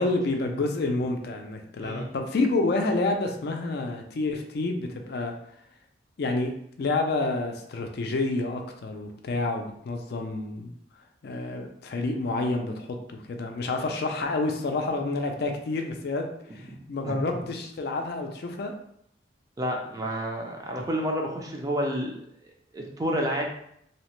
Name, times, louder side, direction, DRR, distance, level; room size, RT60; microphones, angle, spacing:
voice 1, 0.0-5.3 6.2-6.5 6.8-10.7 11.2-16.3 16.5-18.7, left 2 dB, 60° left, 4 dB, 0.4 m, -29 dB
voice 2, 1.8-2.1 16.6-16.8 17.0-17.4 19.6-22.2 22.7-23.5, equal, 20° right, 0 dB, 0.4 m, -30 dB
2.8 x 2.1 x 3.0 m, 0.71 s
head